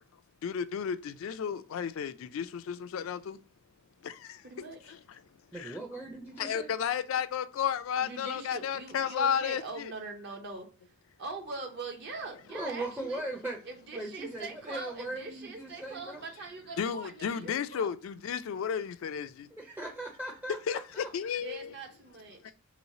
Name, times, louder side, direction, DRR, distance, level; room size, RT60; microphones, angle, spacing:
voice 1, 0.4-3.4 4.0-4.1 5.6-5.8 6.4-9.9 16.8-19.5 20.7-21.7 22.5-22.6, left 7 dB, 70° left, 0.3 m, -33 dB
voice 2, 4.4-4.9 8.0-10.7 11.2-13.2 13.7-17.9 21.4-22.5, right 3 dB, 55° right, 0.6 m, -42 dB
voice 3, 5.5-6.7 12.5-13.6 13.9-16.2 19.5-21.1, right 2 dB, 10° right, 0.4 m, -39 dB
3.1 x 3.0 x 2.6 m
head